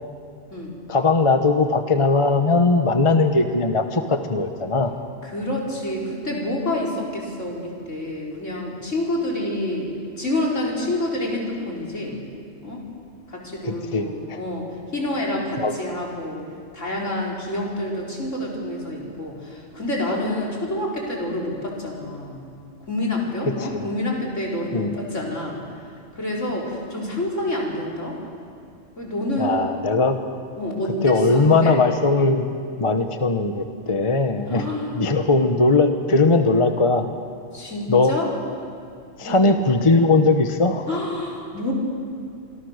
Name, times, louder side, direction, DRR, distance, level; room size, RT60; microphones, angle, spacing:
voice 1, 0.9-4.9 13.6-14.4 15.6-15.7 23.6-23.8 24.7-24.9 29.4-30.2 31.0-32.5 32.8-34.6 34.9-37.1 37.9-38.1 39.2-40.8, left 3 dB, 25° left, 6 dB, 1.1 m, -19 dB
voice 2, 5.2-9.9 10.2-12.2 12.6-12.8 13.3-14.7 14.9-16.4 16.7-22.4 22.9-25.6 26.1-28.2 29.0-29.5 30.6-31.8 34.5-34.9 37.5-38.3 39.2-39.4 40.9-41.7, left 1 dB, 70° left, -1 dB, 5.0 m, -28 dB
25.5 x 25.5 x 6.6 m, 2.4 s
omnidirectional pair, 1.3 m